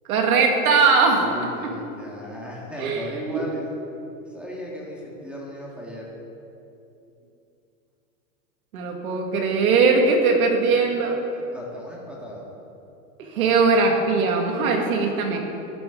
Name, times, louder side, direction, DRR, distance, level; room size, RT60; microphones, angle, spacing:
voice 1, 0.1-1.3 2.8-3.1 3.3-3.4 8.7-11.2 13.2-15.4, right 4 dB, 75° right, 2 dB, 2.3 m, -20 dB
voice 2, 1.2-3.6 4.3-6.1 11.5-12.5 13.3-13.5, equal, 5° right, -4 dB, 2.0 m, -36 dB
12.5 x 11.0 x 4.0 m, 2.8 s
supercardioid pair, 145°, 43 cm